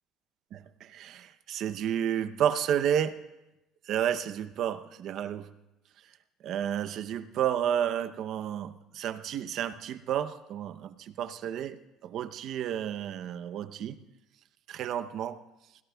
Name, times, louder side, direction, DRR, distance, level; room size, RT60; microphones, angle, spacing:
voice 1, 0.5-3.3 3.8-5.5 6.4-14.0 14.7-15.4, right 9 dB, 50° right, 11 dB, 0.7 m, -31 dB
23.5 x 17.0 x 2.3 m, 0.93 s
cardioid pair, 160°, 0 cm